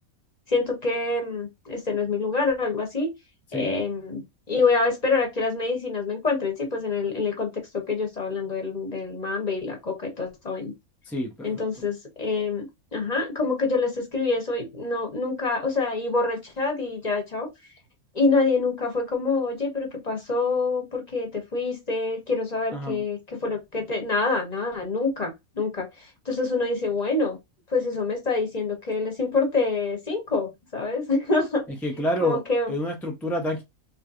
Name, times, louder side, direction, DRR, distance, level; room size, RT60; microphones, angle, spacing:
voice 1, 0.5-3.1 3.5-10.7 11.4-17.5 18.1-27.4 27.7-31.6 32.2-32.8, left 3 dB, 30° left, 1.1 m, -26 dB
voice 2, 22.7-23.0 31.8-32.4 32.7-33.6, left 1 dB, ahead, 0.4 m, -27 dB
3.3 x 3.2 x 2.5 m
omnidirectional pair, 1.5 m